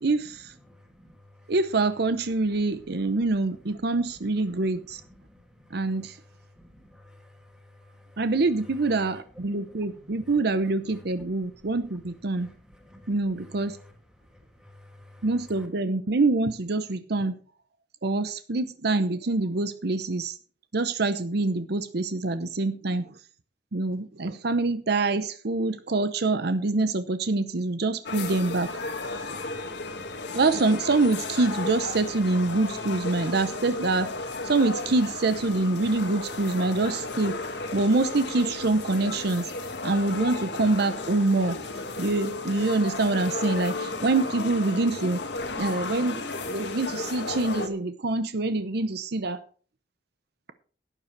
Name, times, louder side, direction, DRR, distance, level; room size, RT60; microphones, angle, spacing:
voice 1, 0.0-0.5 1.5-5.0 5.7-6.2 8.2-12.5 13.1-13.8 15.2-17.4 18.0-20.4 20.7-23.2 23.7-28.7 30.3-34.1 34.4-37.4 37.7-39.5 39.8-41.6 42.0-45.2 45.6-49.4, right 3 dB, 65° right, 0.8 m, -25 dB
voice 2, 0.6-1.5 2.5-3.5 3.7-5.8 6.5-8.3 8.7-12.0 12.3-13.9 14.2-15.7, left 1 dB, 5° right, 2.8 m, -53 dB
sound 1, 28.0-47.7, left 3 dB, 70° left, 1.6 m, -34 dB
12.0 x 9.8 x 4.6 m
head